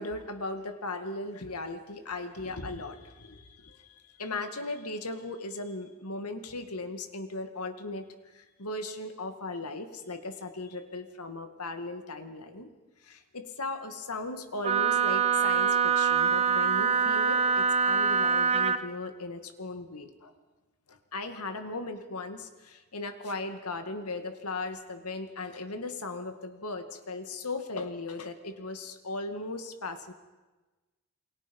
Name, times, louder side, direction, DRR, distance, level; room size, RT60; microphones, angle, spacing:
voice 1, 0.0-8.1 8.3-12.7 13.0-20.3 20.9-30.1, left 2 dB, 85° left, 7 dB, 2.2 m, -37 dB
Wind instrument woodwind instrument, 14.6-18.8, right 6 dB, 30° right, 1.0 m, -24 dB
28.5 x 22.5 x 5.5 m, 1.2 s
head